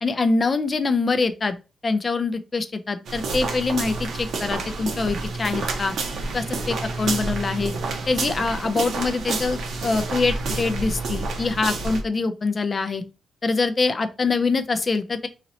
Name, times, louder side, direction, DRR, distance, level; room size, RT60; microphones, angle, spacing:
voice 1, 0.0-1.5 1.8-5.9 6.3-7.7 8.1-13.0 13.4-15.3, left 3 dB, 30° left, 0.4 m, -24 dB
sound 1, 3.0-12.0, right 3 dB, 65° right, 0.9 m, -29 dB
2.9 x 2.8 x 3.9 m
wide cardioid pair, 160°, 0 cm